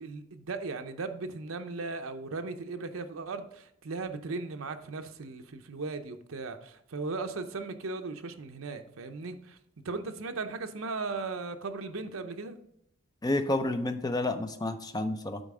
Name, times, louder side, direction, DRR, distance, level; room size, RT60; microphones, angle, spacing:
voice 1, 0.0-9.6 9.8-12.6, right 3 dB, 70° right, 0.7 m, -37 dB
voice 2, 13.2-15.4, left 2 dB, 20° left, 0.5 m, -30 dB
9.0 x 4.1 x 4.9 m
head